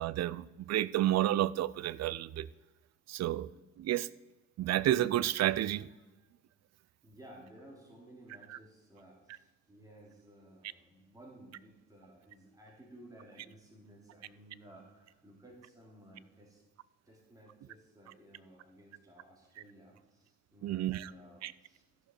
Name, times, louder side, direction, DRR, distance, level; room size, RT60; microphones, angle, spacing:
voice 1, 0.0-2.5 3.1-3.5 3.8-4.1 4.6-5.9 20.6-21.1 21.4-21.5, right 13 dB, 60° right, 0.4 m, -30 dB
voice 2, 7.0-16.6 17.0-22.0, right 1 dB, 10° right, 3.1 m, -56 dB
14.0 x 6.6 x 4.5 m
cardioid pair, 90°, 30 cm